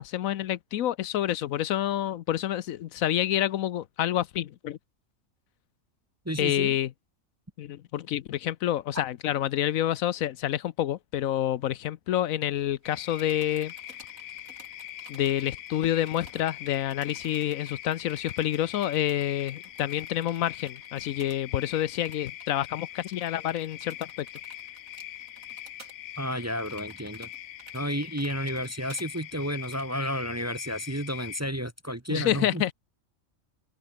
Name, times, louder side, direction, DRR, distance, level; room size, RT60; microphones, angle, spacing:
voice 1, 0.0-4.8 6.4-6.9 7.6-13.7 15.1-24.3 32.1-32.7, left 12 dB, 80° left, 1.1 m, -28 dB
voice 2, 6.2-6.7 26.2-27.3 27.7-32.6, equal, 15° right, 0.9 m, -32 dB
sound 1, 12.8-31.4, left 12 dB, 65° left, 0.7 m, -43 dB
sound 2, 12.8-21.4 21.7-21.8 22.0-22.5 23.0-29.9, right 3 dB, 80° right, 4.6 m, -53 dB
omnidirectional pair, 1.4 m